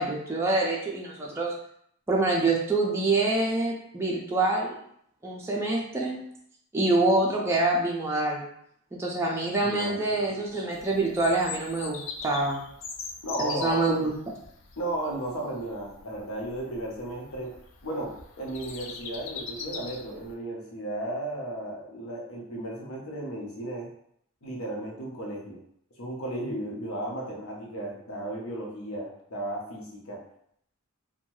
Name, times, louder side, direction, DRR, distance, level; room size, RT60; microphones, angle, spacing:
voice 1, 0.0-1.5 2.1-4.8 5.2-6.2 6.7-8.4 8.9-12.6 13.4-14.1, right 2 dB, 10° right, -3 dB, 0.3 m, -26 dB
voice 2, 9.6-10.2 13.2-13.8 14.8-17.5 17.8-23.9 24.4-25.6 26.0-30.2, right 1 dB, 80° left, -2 dB, 0.8 m, -34 dB
Bird vocalization bird call bird song, 10.7-20.3, left 4 dB, 65° left, 0.4 m, -42 dB
2.6 x 2.2 x 3.0 m, 0.69 s
head